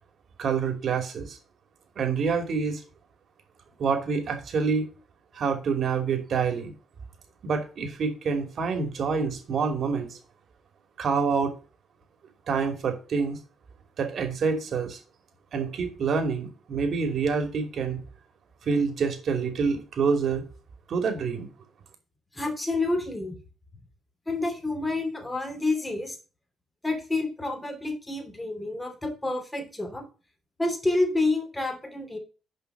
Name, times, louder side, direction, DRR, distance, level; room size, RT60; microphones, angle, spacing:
voice 1, 0.4-1.4 2.0-2.8 3.8-4.9 5.3-6.7 7.4-10.2 11.0-11.5 12.5-13.4 14.0-15.0 15.5-18.0 18.7-20.4 20.9-21.5, right 5 dB, 60° right, 5 dB, 2.7 m, -27 dB
voice 2, 22.3-23.3 24.3-26.2 26.8-30.1 30.6-32.2, left 2 dB, 15° left, 4 dB, 2.7 m, -28 dB
7.5 x 5.2 x 6.7 m, 0.35 s
cardioid pair, 90°, 0 cm